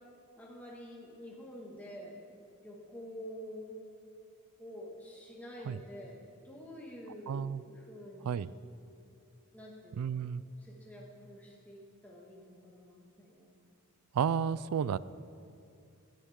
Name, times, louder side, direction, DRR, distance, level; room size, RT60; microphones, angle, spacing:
voice 1, 0.3-2.2 2.6-3.8 4.6-8.5 9.5-10.2 10.6-13.5, equal, 5° left, -4 dB, 1.9 m, -48 dB
voice 2, 7.3-7.6 8.3-8.5 10.0-10.4 14.1-15.0, right 7 dB, 85° right, 18 dB, 0.3 m, -31 dB
18.5 x 10.5 x 3.7 m, 2.5 s
head